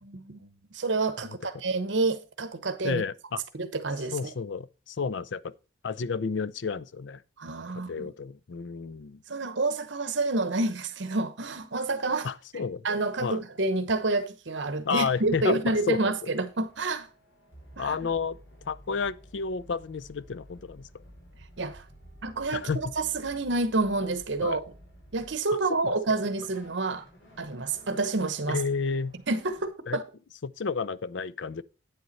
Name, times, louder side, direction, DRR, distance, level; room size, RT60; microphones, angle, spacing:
voice 1, 0.0-3.0 3.5-4.3 7.4-8.1 9.3-17.1 17.8-18.0 21.6-21.8 22.2-24.7 25.1-27.1 27.4-28.6 29.3-30.0, right 3 dB, 70° right, 0.9 m, -29 dB
voice 2, 2.8-3.4 4.1-5.5 5.8-7.2 7.7-9.2 12.2-12.9 13.2-13.4 14.8-15.6 15.9-16.1 17.8-18.4 18.7-20.9 22.5-22.9 24.4-24.6 25.8-25.9 28.5-29.2 29.9-30.0 30.4-31.6, left 5 dB, 70° left, 0.5 m, -31 dB
sound 1, 14.9-29.7, equal, 85° left, 4.6 m, -53 dB
9.2 x 7.9 x 4.1 m
head